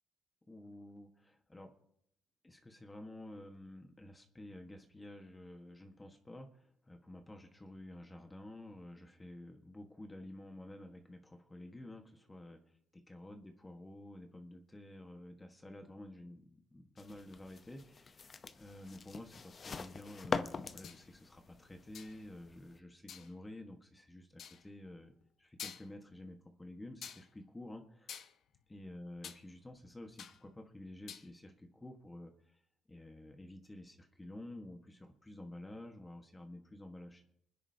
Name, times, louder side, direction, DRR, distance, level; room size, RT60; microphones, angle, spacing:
voice 1, 0.5-1.7 2.4-12.6 12.9-25.1 25.4-28.1 28.7-32.6 32.9-37.2, left 1 dB, 15° left, 4 dB, 1.5 m, -51 dB
sound 1, 17.0-22.8, left 5 dB, 40° left, 0.8 m, -43 dB
sound 2, 20.8-21.1 21.9-22.2 23.1-23.3 24.4-24.6 25.2-25.3 25.6-26.1 27.0-27.3 28.1-29.4 29.7-30.4 30.8-31.3, left 8 dB, 70° left, 1.0 m, -49 dB
26.5 x 9.9 x 2.8 m, 0.69 s
cardioid pair, 90°, 0 cm